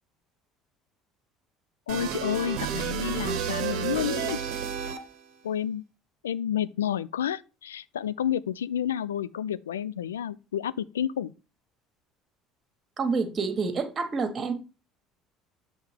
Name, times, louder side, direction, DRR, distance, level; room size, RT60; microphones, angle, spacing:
voice 1, 1.9-4.4 5.4-5.8 6.2-11.3, left 9 dB, 80° left, 0.3 m, -30 dB
sound 1, 1.9-5.3, right 8 dB, 65° right, 0.9 m, -31 dB
voice 2, 13.0-14.5, right 4 dB, 35° right, 1.4 m, -28 dB
7.3 x 3.3 x 5.1 m
hypercardioid pair, 60°, 0 cm